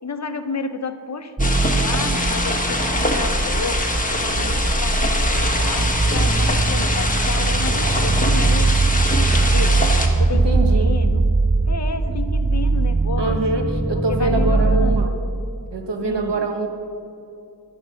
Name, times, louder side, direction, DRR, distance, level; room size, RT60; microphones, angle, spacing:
voice 1, 0.0-3.9 4.1-4.5 4.8-8.7 9.2-9.8 10.2-11.3 11.7-13.4 13.9-15.1 16.0-16.5, left 4 dB, 40° left, 8 dB, 0.8 m, -31 dB
sound 1, 1.4-10.1, left 2 dB, 20° left, 1.2 m, -23 dB
sound 2, 1.4-15.1, right 3 dB, 10° right, 0.4 m, -20 dB
voice 2, 10.4-10.9 13.2-15.2 15.7-16.7, right 2 dB, 80° right, 4 dB, 1.3 m, -24 dB
11.0 x 9.3 x 6.3 m, 2.5 s
wide cardioid pair, 70°, 42 cm